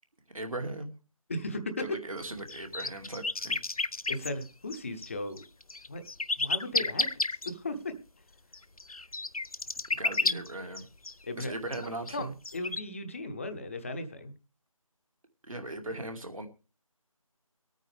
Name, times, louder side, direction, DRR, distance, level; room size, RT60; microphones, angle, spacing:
voice 1, 0.3-0.9 1.8-3.6 10.0-10.9 11.4-12.3 15.5-16.5, right 2 dB, 70° right, 5 dB, 2.4 m, -38 dB
voice 2, 1.3-2.0 4.1-5.4 5.9-6.0 6.4-7.1 7.4-7.9 10.2-10.4 11.2-11.8 12.1-14.3, left 2 dB, 25° left, 8 dB, 0.9 m, -36 dB
sound 1, 2.2-5.1 5.4-7.5 8.5-11.1 11.4-11.5 11.7-12.8, left 3 dB, 85° left, 0.7 m, -32 dB
23.5 x 9.1 x 3.4 m, 0.31 s
figure-of-eight pair, 160°, 18 cm